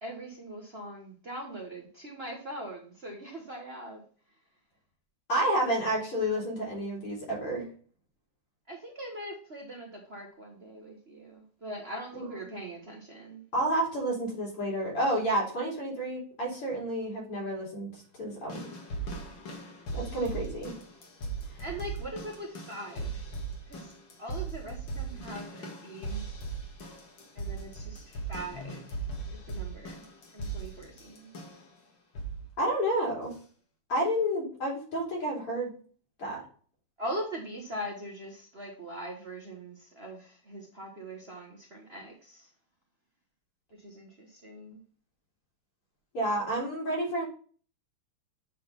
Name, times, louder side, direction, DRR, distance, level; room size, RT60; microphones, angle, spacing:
voice 1, 0.0-4.0 8.7-13.4 20.1-20.4 21.6-23.2 23.7-23.9 24.2-26.2 27.3-29.0 29.3-30.0 30.3-31.3 37.0-42.5 43.7-44.8, right 1 dB, 40° right, 1 dB, 1.1 m, -41 dB
voice 2, 5.3-7.7 12.1-12.3 13.5-18.6 20.0-20.7 32.6-33.3 33.9-35.7 36.2-36.4 46.1-47.3, right 1 dB, 90° left, -3 dB, 3.9 m, -30 dB
sound 1, 18.5-31.7 32.1-32.5 33.3-33.4, right 3 dB, 55° left, 2.2 m, -39 dB
8.4 x 3.9 x 5.2 m, 0.42 s
omnidirectional pair, 2.4 m